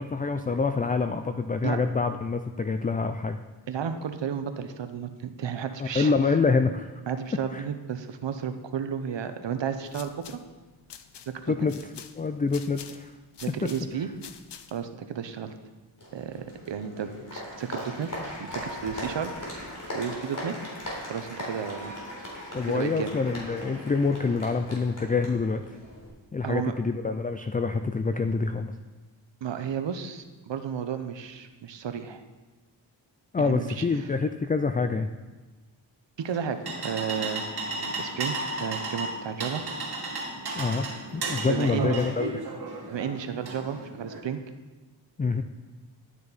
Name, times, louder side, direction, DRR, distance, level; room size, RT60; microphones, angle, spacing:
voice 1, 0.0-3.4 5.8-6.9 7.5-7.6 11.5-11.7 12.2-13.1 22.5-25.8 26.3-28.7 33.3-35.1 40.6-40.9 41.1-42.4 45.2-45.4, left 4 dB, 20° left, 8 dB, 0.4 m, -26 dB
voice 2, 3.7-6.1 7.1-10.4 11.3-11.5 13.4-14.1 14.7-15.5 16.1-18.1 18.4-20.5 21.0-21.9 22.7-23.1 26.4-26.7 29.4-32.2 33.4-33.8 36.2-37.5 37.8-39.6 41.5-42.0 42.9-44.4, right 7 dB, 70° right, 9 dB, 0.9 m, -33 dB
sound 1, 9.8-14.9, left 8 dB, 70° left, 0.7 m, -48 dB
Applause, 16.0-26.1, left 1 dB, 45° left, 3.7 m, -39 dB
sound 2, 36.2-44.2, right 2 dB, 55° right, 2.5 m, -34 dB
12.0 x 9.4 x 4.1 m, 1.2 s
cardioid pair, 80°, 45 cm